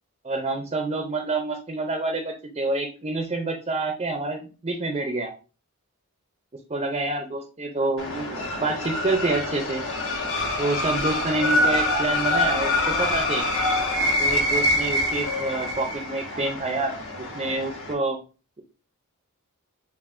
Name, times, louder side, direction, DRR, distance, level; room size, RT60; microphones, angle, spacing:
voice 1, 0.2-5.3 6.7-9.8 10.6-13.5 14.2-16.9 17.2-18.2, right 2 dB, 25° right, 4 dB, 0.5 m, -27 dB
sound 1, 8.0-17.9, left 1 dB, 60° left, 1.1 m, -25 dB
7.0 x 2.5 x 2.5 m, 0.34 s
head